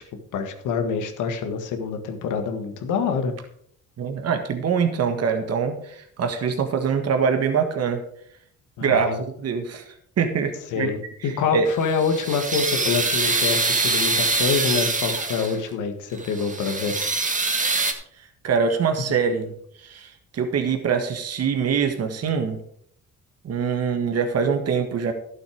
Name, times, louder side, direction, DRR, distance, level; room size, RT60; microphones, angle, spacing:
voice 1, 0.3-3.3 8.8-9.2 10.7-17.0, left 6 dB, 85° left, 7 dB, 1.8 m, -26 dB
voice 2, 4.0-8.0 8.8-9.1 9.4-9.9 10.2-10.9 11.2-11.7 18.4-22.6 23.4-25.1, right 6 dB, 55° right, 6 dB, 1.7 m, -24 dB
sound 1, 11.7-15.7 16.1-17.9, right 3 dB, 25° right, 1.7 m, -24 dB
12.0 x 7.8 x 5.1 m, 0.65 s
cardioid pair, 90°, 30 cm